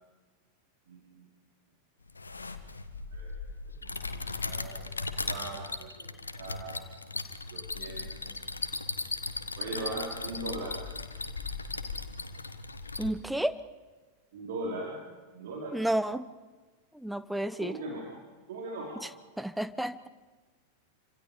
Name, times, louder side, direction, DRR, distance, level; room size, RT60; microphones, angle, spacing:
voice 1, 0.9-1.3 3.1-3.3 3.8-4.8 5.3-6.1 6.4-6.8 7.5-8.3 9.6-10.8 14.3-15.0 15.3-15.8 17.6-18.1 18.5-18.9, right 2 dB, 55° right, -3 dB, 5.0 m, -39 dB
sound 1, 2.1-13.1, left 3 dB, 80° left, 1.5 m, -37 dB
voice 2, 13.0-13.6 15.7-16.2 16.9-17.8 19.0-19.1 19.4-20.1, right 1 dB, ahead, 13 dB, 1.1 m, -31 dB
28.5 x 26.0 x 5.3 m, 1.3 s
figure-of-eight pair, 90°, 0 cm